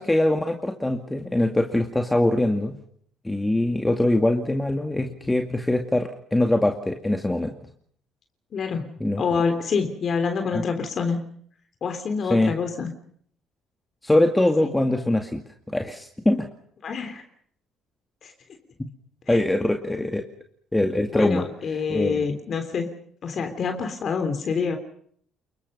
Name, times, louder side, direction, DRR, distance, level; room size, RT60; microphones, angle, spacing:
voice 1, 0.0-2.7 3.2-7.5 9.0-9.2 10.5-10.6 12.3-12.5 14.0-15.4 15.7-16.5 19.3-20.2 20.7-21.5 21.9-22.2, left 1 dB, 10° left, 4 dB, 2.3 m, -22 dB
voice 2, 8.5-11.2 11.8-12.9 14.6-14.7 16.8-17.2 18.2-18.3 19.3-19.4 21.1-22.9 23.2-24.8, left 5 dB, 45° left, 6 dB, 3.4 m, -27 dB
30.0 x 22.0 x 5.6 m, 0.63 s
cardioid pair, 105°, 0 cm